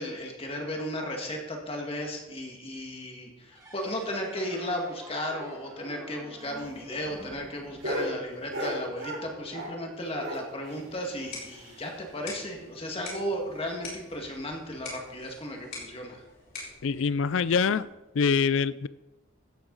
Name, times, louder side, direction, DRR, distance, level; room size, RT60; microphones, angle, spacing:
voice 1, 0.0-16.2, equal, 25° left, 1 dB, 2.0 m, -35 dB
sound 1, 3.5-8.8, right 1 dB, 15° right, 1.8 m, -48 dB
sound 2, 6.4-9.8 10.1-12.1 12.4-12.5 12.8-12.9 13.3-13.4 14.0-14.3 15.1-15.2, equal, 70° right, 4.5 m, -37 dB
sound 3, 11.0-18.0, left 3 dB, 45° left, 4.5 m, -45 dB
voice 2, 16.8-17.9 18.1-18.9, left 5 dB, 65° left, 18 dB, 0.4 m, -24 dB
16.0 x 8.6 x 4.0 m, 1.0 s
head